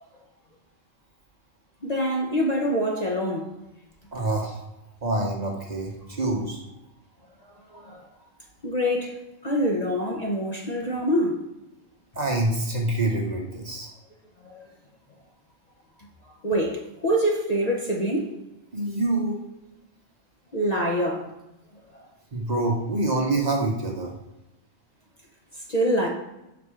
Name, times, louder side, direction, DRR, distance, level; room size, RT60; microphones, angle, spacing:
voice 1, 1.8-3.5 7.4-8.0 8.6-11.4 14.4-14.6 16.4-18.3 20.5-21.3 21.9-22.0 25.7-26.1, equal, 40° left, 0.7 m, -25 dB
voice 2, 4.1-4.6 5.0-6.6 12.1-13.9 18.7-19.4 22.3-24.1, right 2 dB, 40° right, 1.0 m, -26 dB
6.0 x 4.2 x 4.9 m
omnidirectional pair, 1.3 m